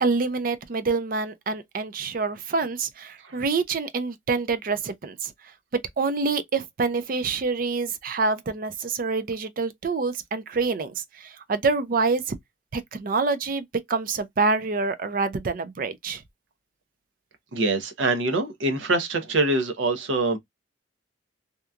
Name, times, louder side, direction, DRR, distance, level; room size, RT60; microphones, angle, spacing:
voice 1, 0.0-5.3 5.7-12.4 12.7-16.2, right 4 dB, 50° right, 0.4 m, -26 dB
voice 2, 17.5-20.4, right 2 dB, 90° right, 0.7 m, -24 dB
2.8 x 2.3 x 2.3 m
head